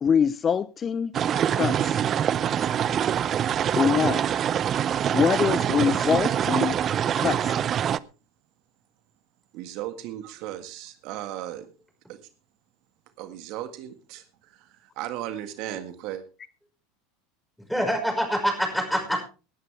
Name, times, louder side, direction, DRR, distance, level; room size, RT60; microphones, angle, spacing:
voice 1, 0.0-1.1 1.5-2.0 3.8-4.2 5.1-6.7 7.2-7.5, left 7 dB, 30° left, 0.5 m, -24 dB
sound 1, 1.1-8.0, right 9 dB, 40° right, 0.6 m, -24 dB
voice 2, 9.5-11.7 12.1-12.2 13.2-16.3, right 12 dB, 60° right, 1.8 m, -36 dB
voice 3, 17.7-19.3, equal, ahead, 5.5 m, -25 dB
19.0 x 11.0 x 3.4 m
hypercardioid pair, 85°, 0 cm